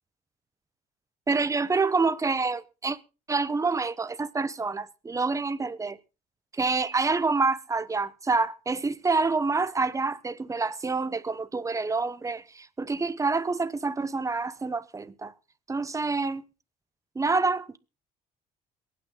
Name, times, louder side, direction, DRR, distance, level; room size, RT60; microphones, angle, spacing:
voice 1, 1.3-3.0 3.3-6.0 6.5-15.3 15.7-16.4 17.1-17.8, right 4 dB, 20° right, 1.0 m, -27 dB
22.5 x 9.3 x 3.9 m
cardioid pair, 110°, 17 cm